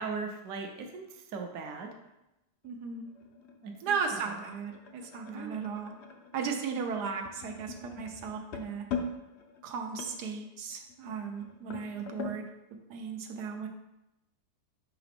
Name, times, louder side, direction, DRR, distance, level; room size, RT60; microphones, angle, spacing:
voice 1, 0.0-1.9 3.6-4.0 5.3-5.6, right 4 dB, 65° right, 3 dB, 1.0 m, -39 dB
sound 1, 2.6-12.4, left 5 dB, 65° left, 0.7 m, -43 dB
voice 2, 2.6-3.1 3.8-5.9 6.3-8.8 9.6-12.4 12.9-13.7, right 6 dB, 85° right, 3 dB, 1.3 m, -36 dB
5.6 x 4.8 x 3.5 m, 0.91 s
omnidirectional pair, 1.7 m